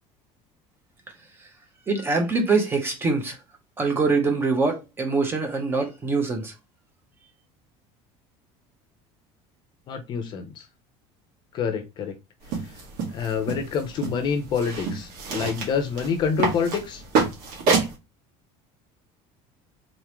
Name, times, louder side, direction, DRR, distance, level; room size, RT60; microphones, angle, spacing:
voice 1, 1.9-3.4 3.8-6.5, right 3 dB, 15° right, 0.9 m, -24 dB
voice 2, 9.9-10.7 11.5-12.1 12.6-12.7 13.1-17.0, left 6 dB, 35° left, 0.8 m, -27 dB
sound 1, 12.4-18.0, right 4 dB, 60° right, 1.9 m, -28 dB
3.9 x 3.7 x 3.1 m
cardioid pair, 175°, 14 cm